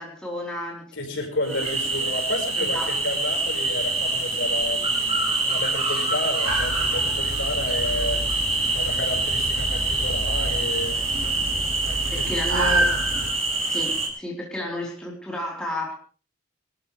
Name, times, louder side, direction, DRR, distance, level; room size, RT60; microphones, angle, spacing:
voice 1, 0.0-1.2 1.4-1.7 2.6-3.0 10.8-11.3 12.1-13.3 13.6-15.9, left 1 dB, 5° left, -3 dB, 4.3 m, -33 dB
voice 2, 1.0-8.4 8.7-11.1 11.8-12.3 12.5-12.9, left 1 dB, 60° left, 2 dB, 5.4 m, -31 dB
sound 1, 1.4-14.1, right 2 dB, 30° right, 5.4 m, -25 dB
sound 2, 6.4-13.3, right 1 dB, 65° right, 6.0 m, -29 dB
24.5 x 14.0 x 3.4 m, 0.37 s
head